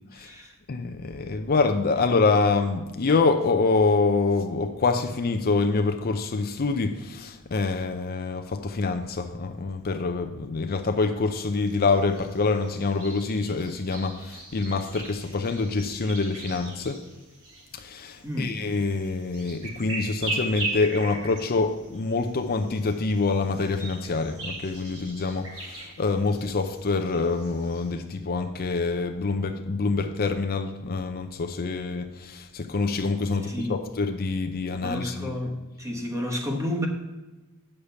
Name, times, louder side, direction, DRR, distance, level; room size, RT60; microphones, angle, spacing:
voice 1, 0.1-0.5 18.2-18.6 33.5-33.8 34.8-36.9, left 1 dB, 15° right, 1 dB, 1.2 m, -31 dB
voice 2, 0.7-17.0 17.7-35.3, left 3 dB, 45° left, 6 dB, 0.6 m, -26 dB
sound 1, 11.4-27.9, right 2 dB, 70° right, 3.7 m, -39 dB
8.5 x 6.6 x 5.6 m, 1.1 s
head